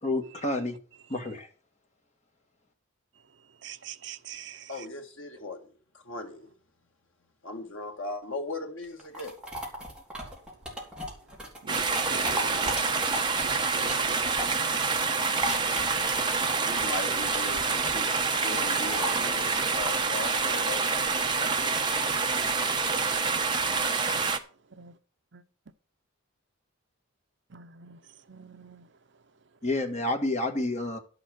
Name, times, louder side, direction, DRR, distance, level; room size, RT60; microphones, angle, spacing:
voice 1, 0.0-0.8 1.1-1.5 29.6-31.0, left 2 dB, 35° left, 1.8 m, -29 dB
voice 2, 3.6-4.7 11.6-12.7 13.4-14.9 19.1-19.2 23.3-23.4 23.7-23.8 24.1-24.3 24.8-24.9 25.3-25.4 27.5-28.0 28.3-28.8, right 5 dB, 55° right, 0.7 m, -44 dB
voice 3, 4.7-6.5 7.4-9.3 16.2-21.9, left 2 dB, 70° left, 2.1 m, -39 dB
sound 1, 8.8-14.7 15.0-21.3, equal, 5° right, 3.2 m, -38 dB
sound 2, 11.7-24.4, right 4 dB, 20° right, 1.0 m, -27 dB
11.5 x 7.1 x 6.3 m
head